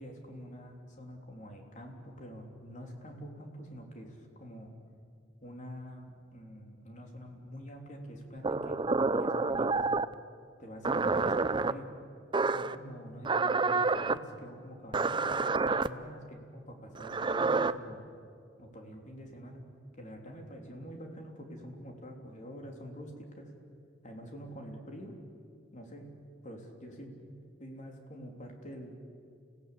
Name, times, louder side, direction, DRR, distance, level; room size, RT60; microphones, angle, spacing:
voice 1, 0.0-4.7 5.4-9.9 10.6-11.9 12.5-18.0 18.6-19.6 20.0-23.5 24.0-25.1 25.7-26.1 26.4-29.0, equal, 45° left, 2 dB, 3.5 m, -46 dB
sound 1, 8.4-10.1 10.8-11.7 12.3-12.8 13.2-14.2 14.9-15.9 17.0-17.7, right 3 dB, 25° right, 0.5 m, -28 dB
30.0 x 17.0 x 8.5 m, 2.4 s
head